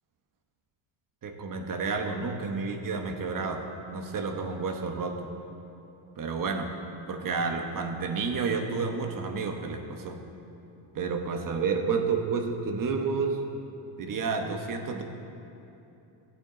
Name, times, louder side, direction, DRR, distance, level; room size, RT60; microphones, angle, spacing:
voice 1, 1.2-3.6 3.9-5.3 6.2-6.7 7.1-10.2 10.9-13.4 14.0-15.0, right 4 dB, 45° right, 4 dB, 1.2 m, -30 dB
15.0 x 8.3 x 3.9 m, 2.9 s
cardioid pair, 110°, 46 cm